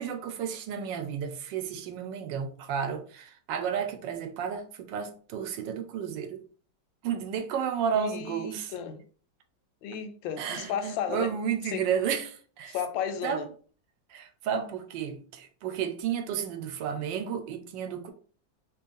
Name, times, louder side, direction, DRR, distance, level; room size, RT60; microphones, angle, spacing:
voice 1, 0.0-6.4 7.0-8.7 10.4-12.8 13.2-13.4 14.1-18.1, right 8 dB, 80° right, 1.2 m, -32 dB
voice 2, 8.0-9.0 9.8-11.3 11.6-11.8 12.7-13.5, left 8 dB, 90° left, 1.3 m, -34 dB
3.1 x 2.9 x 3.6 m
omnidirectional pair, 2.0 m